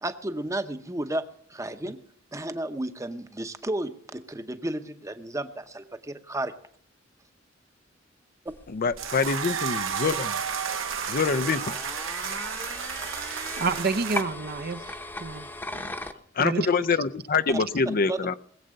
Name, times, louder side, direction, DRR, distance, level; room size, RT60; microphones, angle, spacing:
voice 1, 0.0-2.0 2.3-6.5 8.4-8.5 17.5-17.6 18.1-18.2, right 1 dB, 15° right, 0.8 m, -33 dB
sound 1, 8.5-16.1, left 1 dB, 10° left, 0.9 m, -39 dB
voice 2, 8.7-10.4 11.1-11.7 15.7-15.8 16.3-18.3, left 4 dB, 50° left, 0.5 m, -25 dB
sound 2, 9.0-14.2, right 7 dB, 85° right, 1.5 m, -32 dB
voice 3, 13.6-15.5 16.4-16.7, right 4 dB, 50° right, 0.7 m, -29 dB
20.0 x 8.0 x 6.4 m
head